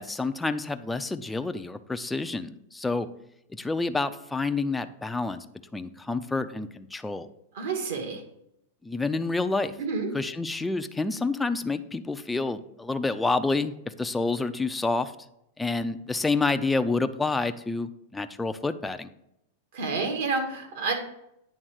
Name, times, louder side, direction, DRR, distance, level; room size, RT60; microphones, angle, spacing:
voice 1, 0.0-3.1 3.5-5.5 5.7-7.3 8.8-9.8 10.1-15.1 15.6-19.1, left 3 dB, 5° left, 9 dB, 0.4 m, -28 dB
voice 2, 7.6-8.2 9.8-10.1 19.7-20.9, right 4 dB, 70° right, 4 dB, 1.8 m, -29 dB
9.0 x 3.6 x 6.3 m, 0.80 s
supercardioid pair, 135°, 0 cm